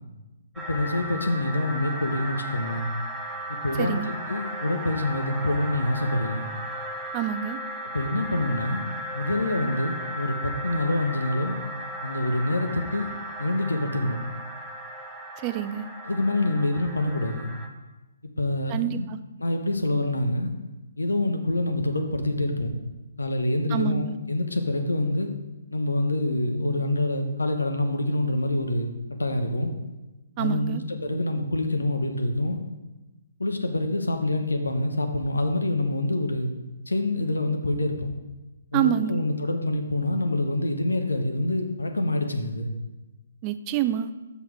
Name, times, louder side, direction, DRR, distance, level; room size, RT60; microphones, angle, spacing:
voice 1, 0.6-2.9 3.5-6.5 7.9-8.8 9.1-11.6 12.0-13.1 13.4-14.2 16.0-17.5 18.4-19.1 19.4-20.5 21.0-22.7 23.2-25.3 25.7-29.7 30.4-32.6 33.4-36.5 36.9-38.1 38.7-42.7, left 1 dB, 80° left, 5 dB, 0.9 m, -26 dB
sound 1, 0.6-17.7, right 1 dB, 5° right, 0.7 m, -36 dB
voice 2, 3.8-4.1 7.1-7.6 15.4-15.9 18.7-19.2 23.7-24.2 30.4-30.8 38.7-39.2 43.4-44.1, right 10 dB, 25° right, 11 dB, 0.3 m, -27 dB
6.3 x 5.7 x 4.6 m, 1.1 s
figure-of-eight pair, 135°, 0 cm